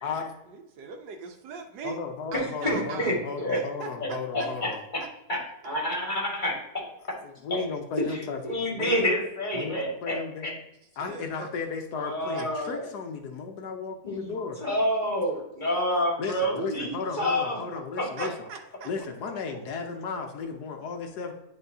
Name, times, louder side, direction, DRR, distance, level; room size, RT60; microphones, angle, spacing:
voice 1, 0.0-0.3 1.8-4.8 7.2-9.0 9.5-10.5 11.0-14.6 16.2-18.3 18.8-21.3, left 5 dB, 70° left, 4 dB, 1.3 m, -35 dB
voice 2, 0.5-2.0 2.3-3.2 3.5-5.1 8.0-8.2 10.1-10.2 11.1-11.5 12.3-12.7 18.2-18.9, right 5 dB, 85° right, 4 dB, 1.5 m, -40 dB
voice 3, 2.6-3.6 4.0-5.0 5.3-5.4 5.6-6.6 8.4-10.2 10.4-10.5 11.9-12.9 14.0-14.3 14.6-17.6 18.0-18.3, equal, 30° left, -2 dB, 1.9 m, -28 dB
10.0 x 3.8 x 2.7 m, 0.85 s
omnidirectional pair, 1.9 m